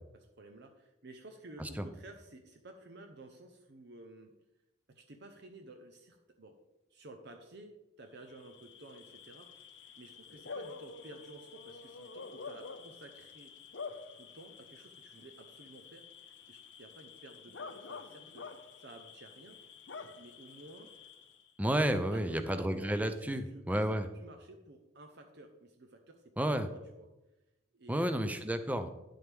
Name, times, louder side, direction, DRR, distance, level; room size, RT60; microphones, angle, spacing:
voice 1, 0.1-4.3 4.9-6.5 6.9-9.5 9.9-13.5 14.1-16.0 16.5-18.5 18.8-19.6 20.1-20.9 21.9-27.1 27.7-28.3, right 2 dB, 60° right, 4 dB, 0.8 m, -53 dB
Bark / Cricket, 8.2-21.5, left 4 dB, 70° left, 0.9 m, -49 dB
voice 2, 21.6-24.1 26.4-26.7 27.9-28.9, right 1 dB, 10° right, 9 dB, 0.6 m, -31 dB
10.0 x 7.7 x 3.5 m, 0.98 s
head